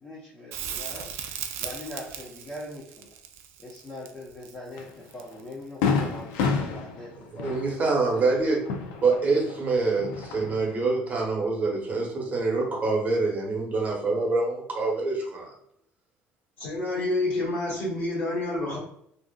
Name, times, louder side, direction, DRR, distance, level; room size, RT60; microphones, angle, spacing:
voice 1, 0.0-3.1 3.6-8.2, left 1 dB, 30° left, -5 dB, 0.7 m, -42 dB
Crackle, 0.5-5.6 8.4-8.5, right 8 dB, 70° right, 0.3 m, -38 dB
Fireworks, 4.8-4.9 5.3-5.4 5.8-9.6 9.9-10.8, left 5 dB, 85° left, 0.4 m, -29 dB
voice 2, 7.3-8.6 9.0-15.5, right 3 dB, 35° right, -1 dB, 0.9 m, -25 dB
voice 3, 16.6-18.8, left 2 dB, 60° left, -3 dB, 1.4 m, -28 dB
2.6 x 2.4 x 2.2 m, 0.69 s
supercardioid pair, 95°, 4 cm